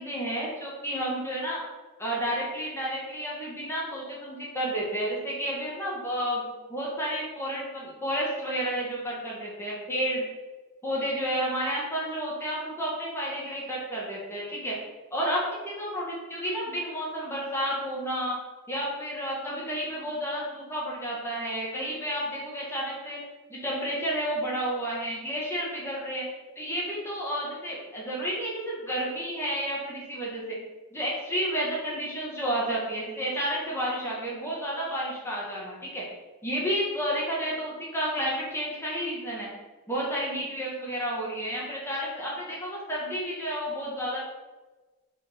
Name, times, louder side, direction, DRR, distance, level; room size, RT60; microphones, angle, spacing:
voice 1, 0.0-1.6 2.0-10.2 10.8-14.8 15.1-18.4 18.7-23.2 23.5-26.3 26.5-30.6 30.9-36.0 36.4-39.5 39.9-44.2, equal, 10° left, -5 dB, 1.7 m, -31 dB
5.9 x 4.9 x 5.6 m, 1.2 s
head